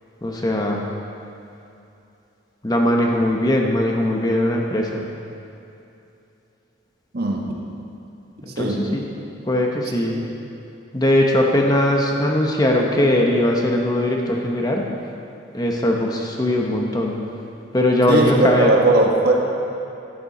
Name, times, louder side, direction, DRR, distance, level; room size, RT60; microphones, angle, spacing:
voice 1, 0.2-0.9 2.6-5.1 8.6-9.1 9.5-10.2 10.9-14.8 15.5-17.2 17.7-18.7, left 1 dB, 20° left, 0 dB, 0.9 m, -20 dB
voice 2, 7.1-7.6 8.5-8.9 10.0-10.3 18.1-19.3, right 2 dB, 50° right, 0 dB, 1.4 m, -19 dB
13.0 x 11.0 x 4.2 m, 2.8 s
head